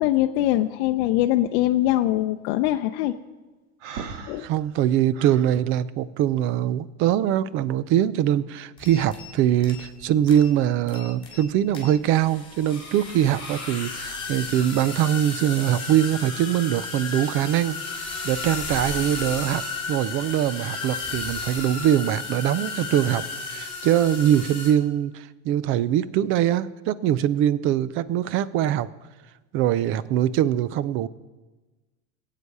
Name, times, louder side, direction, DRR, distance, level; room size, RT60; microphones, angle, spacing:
voice 1, 0.0-3.1 4.3-4.5, left 14 dB, 60° left, 5 dB, 0.6 m, -22 dB
Breathing, 3.8-5.6, right 6 dB, 85° right, 1.5 m, -38 dB
voice 2, 4.4-28.9 29.5-31.1, right 11 dB, 35° right, 18 dB, 0.4 m, -23 dB
sound 1, 8.8-9.3 9.6-10.0 10.3-10.5 10.9-11.5 11.7-24.7, left 4 dB, 15° left, 3.2 m, -34 dB
21.5 x 8.4 x 4.7 m, 1.2 s
supercardioid pair, 155°, 37 cm